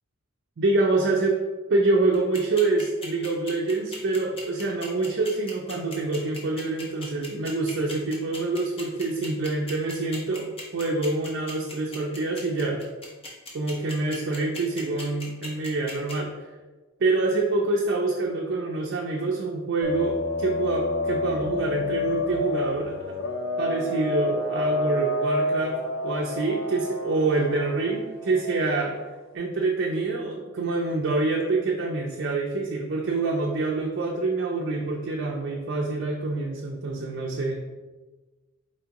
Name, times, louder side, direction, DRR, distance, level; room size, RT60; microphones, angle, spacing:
voice 1, 0.6-1.4 1.7-12.8 13.5-16.3 17.0-23.0 23.6-29.0 29.3-37.7, right 3 dB, 55° right, -1 dB, 0.4 m, -26 dB
sound 1, 2.1-16.1, left 2 dB, 25° left, 0.7 m, -38 dB
sound 2, 19.8-29.1, left 2 dB, 60° left, 0.4 m, -29 dB
4.3 x 3.5 x 2.8 m, 1.3 s
head